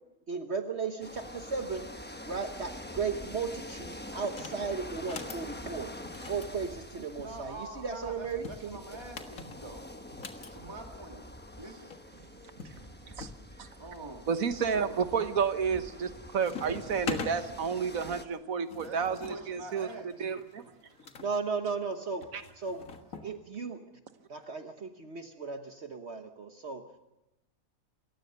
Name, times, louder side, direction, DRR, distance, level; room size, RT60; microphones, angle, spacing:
voice 1, 0.3-1.9 2.3-5.9 6.3-8.8 21.2-22.3 22.6-22.8 23.2-23.9 24.3-26.9, right 5 dB, 50° right, 7 dB, 1.4 m, -35 dB
sound 1, 1.0-18.2, left 1 dB, 10° left, 0.9 m, -45 dB
sound 2, 4.3-4.6 5.0-5.5 6.1-7.4 8.2-10.5 11.6-11.7 11.9-12.0 12.6-13.4 13.9-14.5 15.0-15.4 15.7-16.1 16.4-17.4 18.3-21.3 22.2-23.3, left 5 dB, 70° left, 2.0 m, -43 dB
voice 2, 7.2-9.9 10.5-11.3 11.5-11.9 13.5-14.3 14.7-15.3 18.8-20.3, right 2 dB, 20° right, 3 dB, 1.9 m, -45 dB
voice 3, 12.6-13.3 13.6-13.7 14.3-19.9 20.2-20.7 22.3-22.4, right 6 dB, 75° right, 10 dB, 1.6 m, -31 dB
28.0 x 15.0 x 6.7 m, 0.93 s
omnidirectional pair, 1.5 m